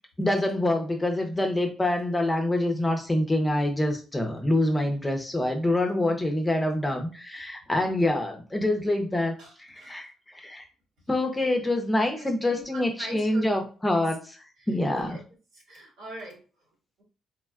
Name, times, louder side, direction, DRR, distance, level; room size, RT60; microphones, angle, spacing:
voice 1, 0.2-10.7 11.1-14.3 14.7-15.2, left 1 dB, 15° left, 4 dB, 0.6 m, -26 dB
voice 2, 9.4-10.0 11.4-11.6 12.1-13.5 14.6-15.2 15.5-16.4, right 1 dB, 90° right, -4 dB, 1.5 m, -42 dB
3.5 x 2.2 x 2.3 m, 0.35 s
cardioid pair, 90°, 0 cm